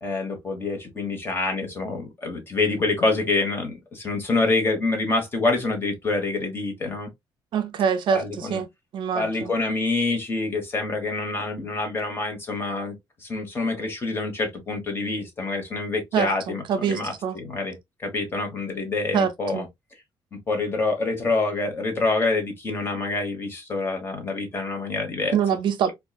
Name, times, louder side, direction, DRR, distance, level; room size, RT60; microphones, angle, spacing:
voice 1, 0.0-7.1 8.1-8.6 9.1-12.9 13.2-19.6 20.3-25.4 25.9-26.0, left 3 dB, 25° left, 1.2 m, -26 dB
voice 2, 7.5-8.7 8.9-9.5 16.1-17.4 19.1-19.7 25.3-25.9, right 7 dB, 65° right, 0.5 m, -25 dB
4.6 x 2.3 x 2.3 m
cardioid pair, 160°, 9 cm